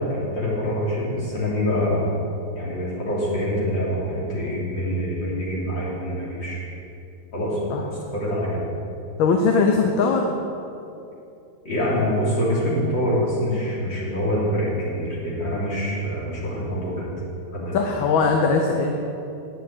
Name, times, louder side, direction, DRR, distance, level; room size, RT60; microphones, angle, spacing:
voice 1, 0.1-2.2 2.5-6.6 7.3-7.6 8.1-8.6 11.7-17.1 17.5-17.9, equal, 65° left, -7 dB, 3.8 m, -25 dB
voice 2, 7.7-8.1 9.2-10.3 17.7-18.9, left 4 dB, 80° left, 2 dB, 1.6 m, -20 dB
9.4 x 6.3 x 8.6 m, 2.7 s
omnidirectional pair, 2.2 m